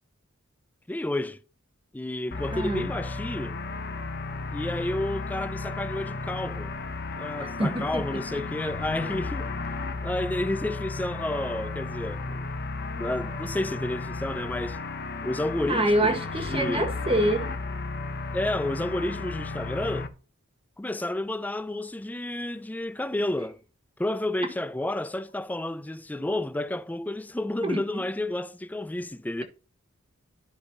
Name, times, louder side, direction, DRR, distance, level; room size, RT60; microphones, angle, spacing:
voice 1, 0.9-1.4 1.9-3.6 4.5-6.7 7.2-9.5 10.0-12.4 13.0-14.8 15.2-16.9 18.3-20.1 20.8-23.6 24.0-29.4, left 1 dB, 10° left, 0.3 m, -31 dB
sound 1, 2.3-20.1, left 3 dB, 50° left, 0.8 m, -34 dB
voice 2, 2.5-2.9 7.6-8.1 15.7-17.5 27.6-27.8, right 1 dB, 25° right, 1.6 m, -25 dB
12.5 x 5.0 x 2.7 m
head